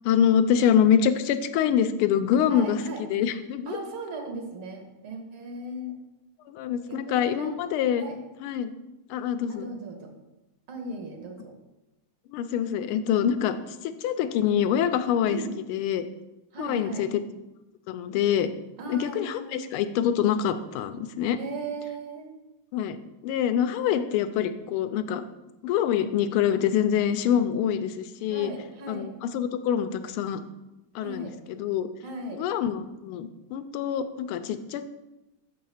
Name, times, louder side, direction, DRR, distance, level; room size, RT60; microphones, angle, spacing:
voice 1, 0.0-2.8 3.1-3.8 6.5-8.1 8.4-8.7 9.1-9.7 12.3-13.6 13.8-15.4 15.7-16.0 16.6-17.2 17.9-18.5 18.9-21.4 22.7-23.0 23.2-25.2 25.6-28.5 28.9-30.4 30.9-31.9 32.4-34.9, left 9 dB, 90° left, 10 dB, 1.5 m, -25 dB
voice 2, 2.5-3.0 3.7-6.0 6.9-7.6 8.0-8.2 9.5-10.1 10.7-11.5 15.3-15.5 16.5-17.1 18.8-19.7 21.3-22.3 28.3-29.1 31.0-31.4 32.0-32.4, right 2 dB, 90° right, 3 dB, 2.0 m, -37 dB
6.5 x 4.7 x 5.5 m, 1.0 s
omnidirectional pair, 2.3 m